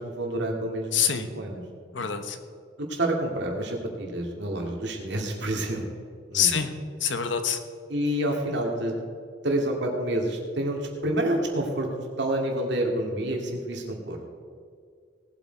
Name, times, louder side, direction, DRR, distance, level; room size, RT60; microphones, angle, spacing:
voice 1, 0.0-1.6 2.8-5.9 6.3-6.7 7.9-8.9 9.4-11.9 12.2-14.2, right 1 dB, 65° right, 1 dB, 2.3 m, -28 dB
voice 2, 0.9-1.3 1.9-2.4 6.3-6.7 7.0-7.6, left 8 dB, 75° left, 8 dB, 1.1 m, -25 dB
18.5 x 8.0 x 4.6 m, 2.1 s
head